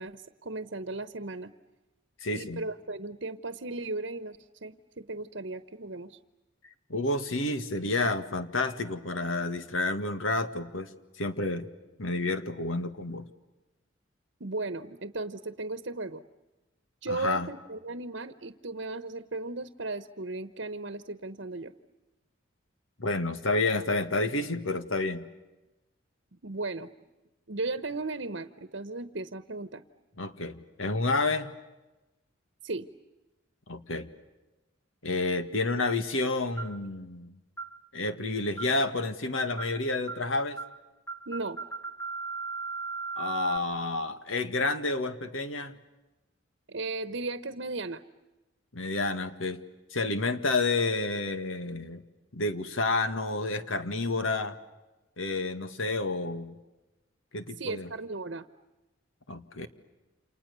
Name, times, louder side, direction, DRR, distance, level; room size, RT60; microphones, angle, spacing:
voice 1, 0.0-1.5 2.3-6.2 14.4-16.2 17.0-21.7 26.4-26.9 27.5-29.8 32.6-32.9 41.3-41.6 46.7-48.0 57.6-58.5, right 3 dB, 65° right, 11 dB, 1.1 m, -36 dB
voice 2, 2.2-2.6 6.9-10.9 11.2-11.7 12.0-13.3 17.1-17.5 23.0-25.3 30.2-31.5 33.7-34.1 35.0-37.4 37.9-40.6 43.2-45.7 48.7-49.6 49.9-52.0 52.3-54.6 55.2-56.6 57.3-57.9 59.3-59.7, left 2 dB, 90° left, 10 dB, 2.0 m, -30 dB
sound 1, 36.6-36.8 37.6-37.8 38.6-38.8 39.6-39.8 40.1-40.3 40.6-40.8 41.1-43.6, right 4 dB, 10° left, 1.5 m, -37 dB
30.0 x 28.0 x 6.9 m, 1.1 s
head